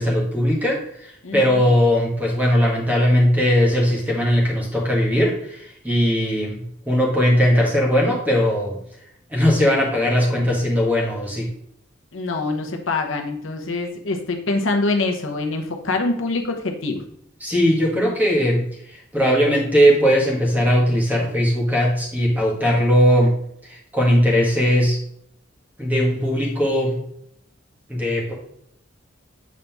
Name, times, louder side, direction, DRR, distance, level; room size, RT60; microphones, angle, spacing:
voice 1, 0.0-8.8 9.3-11.5 17.4-23.3 23.6-25.0 25.8-27.0 27.9-28.3, equal, 10° right, -3 dB, 1.6 m, -19 dB
voice 2, 1.2-1.7 12.1-17.0, left 3 dB, 85° left, 4 dB, 0.9 m, -25 dB
7.4 x 4.1 x 3.5 m, 0.70 s
head